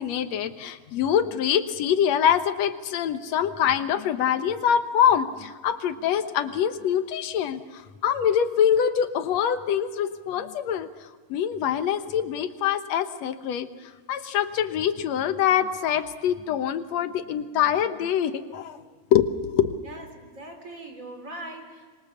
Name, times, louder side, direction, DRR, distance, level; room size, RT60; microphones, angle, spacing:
voice 1, 0.0-10.9 11.3-13.7 14.1-18.8 19.1-19.8, left 9 dB, 65° left, 10 dB, 1.9 m, -24 dB
voice 2, 19.8-21.9, right 1 dB, 25° right, 6 dB, 3.2 m, -41 dB
26.0 x 24.0 x 7.1 m, 1.5 s
omnidirectional pair, 3.9 m